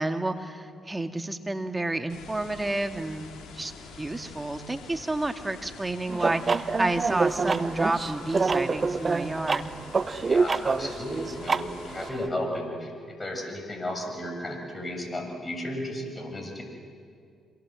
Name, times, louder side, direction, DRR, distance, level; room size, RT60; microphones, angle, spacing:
voice 1, 0.0-3.7 4.0-9.7, right 2 dB, 20° right, 6 dB, 2.1 m, -30 dB
sound 1, 2.1-12.1, left 4 dB, 70° left, 3.8 m, -46 dB
sound 2, 6.1-12.3, right 4 dB, 40° right, 0.9 m, -27 dB
voice 2, 10.3-12.9 13.2-16.6, left 1 dB, 25° left, 3 dB, 7.4 m, -34 dB
26.0 x 22.5 x 7.7 m, 2.3 s
hypercardioid pair, 50°, 0 cm